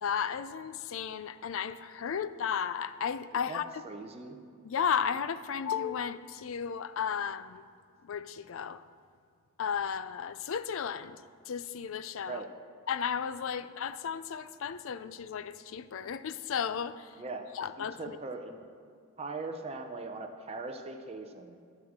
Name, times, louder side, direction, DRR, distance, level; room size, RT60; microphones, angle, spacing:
voice 1, 0.0-3.6 4.6-7.6 8.0-8.8 9.6-11.2 11.5-12.4 12.9-17.2 17.5-18.2, left 7 dB, 60° left, 13 dB, 0.4 m, -34 dB
voice 2, 3.5-4.4 12.2-12.5 17.2-17.5 17.8-18.6 19.2-21.6, right 3 dB, 30° right, 4 dB, 0.6 m, -40 dB
18.5 x 6.4 x 3.6 m, 2.1 s
head